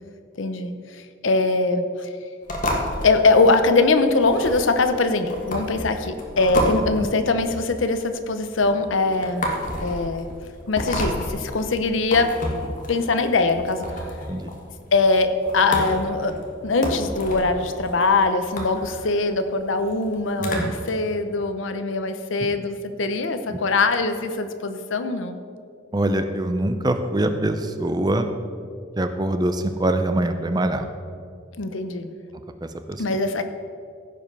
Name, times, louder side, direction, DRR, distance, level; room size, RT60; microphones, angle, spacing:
voice 1, 0.4-2.1 3.0-9.5 9.8-10.3 10.7-12.4 12.9-13.8 14.9-16.3 16.6-25.4 31.6-32.1 33.0-33.4, left 3 dB, 75° left, 9 dB, 0.8 m, -22 dB
sound 1, 2.5-20.9, left 1 dB, 40° left, 1.4 m, -31 dB
voice 2, 20.4-20.7 25.9-28.3 29.0-30.8 32.9-33.0, right 1 dB, 20° right, 8 dB, 0.5 m, -23 dB
15.5 x 5.3 x 5.5 m, 2.3 s
head